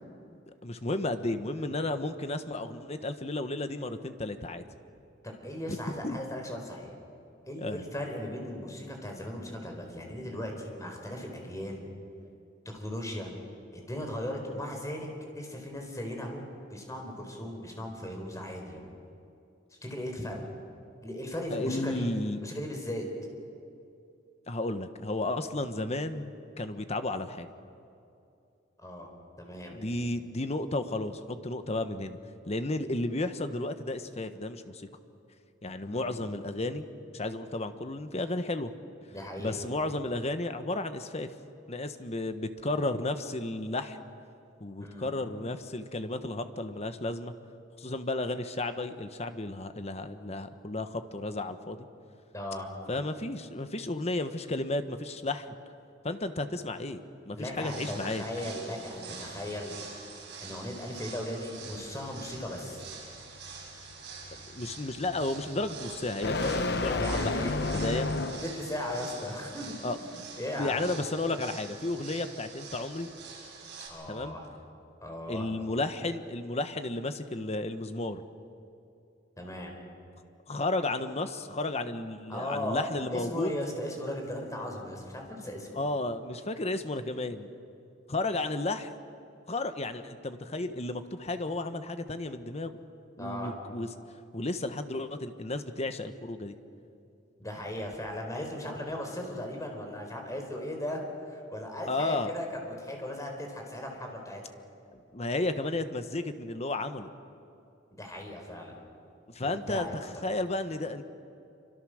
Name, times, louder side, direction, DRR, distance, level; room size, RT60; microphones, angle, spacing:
voice 1, 0.6-4.6 5.7-5.8 6.0-6.2 7.6-7.8 21.5-22.4 24.5-27.5 29.7-32.2 32.4-34.9 35.6-36.8 37.1-38.7 39.4-41.3 41.7-44.0 44.6-47.3 47.8-51.9 52.9-55.5 56.0-58.2 64.5-68.1 69.8-70.0 70.5-73.1 74.1-74.3 75.3-78.2 80.5-83.5 85.7-87.5 88.1-88.9 89.5-92.8 93.2-93.9 94.3-96.5 101.9-102.3 104.9-107.1 109.3-111.0, left 2 dB, 35° left, 9 dB, 1.2 m, -33 dB
voice 2, 5.2-6.9 7.5-11.9 12.7-13.3 13.7-15.1 15.3-16.4 16.7-18.8 19.8-20.4 21.0-22.1 22.4-23.1 28.8-29.1 29.4-29.8 35.8-36.1 39.1-39.6 44.8-45.1 52.3-52.7 57.3-59.8 60.4-62.8 66.9-67.5 68.4-70.0 70.4-70.9 73.9-74.5 75.0-75.5 79.4-79.7 82.3-85.8 93.2-93.5 97.4-104.4 107.9-108.8 109.4-110.0, left 1 dB, 15° left, 2 dB, 4.2 m, -37 dB
sound 1, 57.5-73.9, right 5 dB, 65° right, 7.2 m, -46 dB
sound 2, 61.7-68.7, left 3 dB, 60° left, 1.0 m, -33 dB
27.5 x 25.0 x 6.5 m, 2.6 s
head